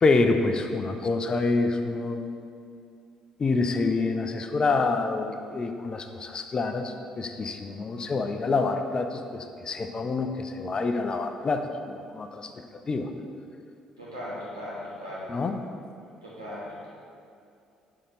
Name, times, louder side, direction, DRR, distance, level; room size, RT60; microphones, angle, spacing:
voice 1, 0.0-2.3 3.4-12.5 12.9-13.1 15.3-15.6, left 3 dB, 35° left, 7 dB, 0.4 m, -27 dB
voice 2, 14.0-15.3 16.2-16.9, left 1 dB, 90° right, -9 dB, 1.3 m, -38 dB
6.6 x 3.7 x 4.0 m, 2.5 s
figure-of-eight pair, 50°, 2 cm